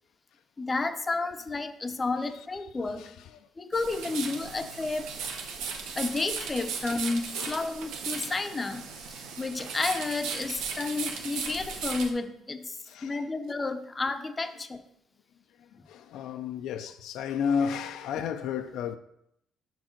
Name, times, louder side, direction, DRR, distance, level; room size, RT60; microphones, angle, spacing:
voice 1, 0.6-3.1 3.6-5.1 6.0-8.9 9.4-14.8 18.1-18.2, left 3 dB, 20° left, 0.5 m, -31 dB
voice 2, 3.0-3.4 7.3-7.7 11.5-11.6 12.8-13.3 15.6-19.0, left 7 dB, 75° left, 0.4 m, -33 dB
sound 1, 3.7-12.1, right 5 dB, 90° right, 0.8 m, -37 dB
6.1 x 4.5 x 4.4 m
cardioid pair, 105°, 0 cm